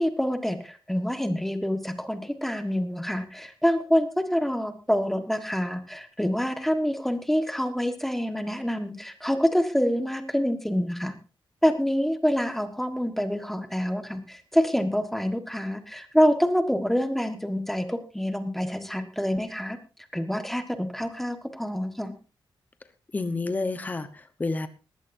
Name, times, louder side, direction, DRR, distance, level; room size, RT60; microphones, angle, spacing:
voice 1, 0.0-11.1 11.6-19.8 20.1-22.1, equal, 5° left, 8 dB, 1.4 m, -26 dB
voice 2, 23.1-24.7, left 3 dB, 20° left, 10 dB, 1.0 m, -29 dB
20.0 x 16.0 x 2.7 m, 0.34 s
wide cardioid pair, 170°, 9 cm